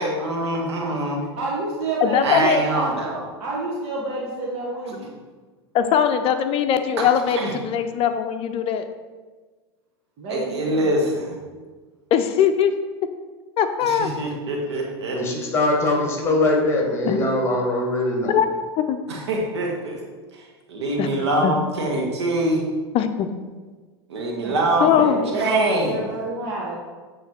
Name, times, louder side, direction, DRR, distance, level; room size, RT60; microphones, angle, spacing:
voice 1, 0.0-1.2 2.2-3.2 7.3-7.5 10.3-11.4 13.8-15.2 19.1-20.0 20.3-22.6 24.1-26.0, right 1 dB, 85° right, -1 dB, 1.5 m, -24 dB
voice 2, 1.4-2.9 3.4-5.1 10.2-10.9 24.4-26.8, right 2 dB, 50° right, -4 dB, 1.4 m, -29 dB
voice 3, 2.0-2.6 5.7-8.9 12.1-12.7 13.6-14.1 17.0-17.2 18.3-18.5 18.9-19.0 21.0-21.1 21.4-21.5 22.9-23.3 24.8-25.2, left 8 dB, 40° left, 9 dB, 0.6 m, -20 dB
voice 4, 15.1-18.4, left 2 dB, 20° left, 0 dB, 1.9 m, -22 dB
8.2 x 3.2 x 4.3 m, 1.4 s
hypercardioid pair, 95°, 14 cm